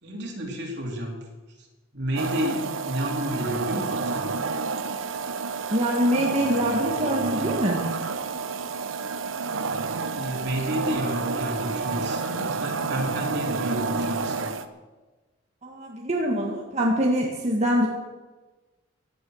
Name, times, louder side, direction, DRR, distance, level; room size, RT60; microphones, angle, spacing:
voice 1, 0.0-1.2 1.6-1.7 1.9-4.3 10.1-14.6, equal, 60° right, 0 dB, 3.5 m, -31 dB
sound 1, 2.2-14.7, right 4 dB, 85° right, 1.0 m, -29 dB
voice 2, 5.7-7.8 15.6-17.9, equal, 35° right, -2 dB, 1.8 m, -24 dB
16.5 x 11.0 x 6.4 m, 1.2 s
head